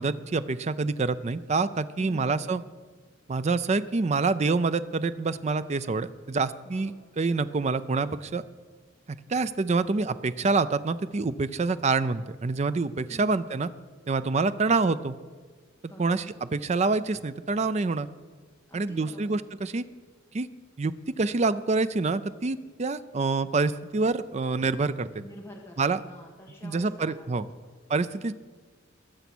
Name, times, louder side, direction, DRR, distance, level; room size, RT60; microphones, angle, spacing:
voice 1, 0.0-2.6 3.3-6.9 7.2-8.4 9.1-13.7 14.1-15.2 16.0-16.2 16.5-18.1 18.7-19.8 20.3-20.5 20.8-25.1 25.8-26.0 26.6-27.5 27.9-28.3, right 3 dB, 35° right, 14 dB, 0.4 m, -26 dB
voice 2, 2.0-2.6 6.6-7.1 13.1-13.4 15.9-16.3 18.7-19.3 25.2-27.8, equal, 10° left, -2 dB, 1.4 m, -47 dB
19.5 x 7.1 x 6.1 m, 1.5 s
head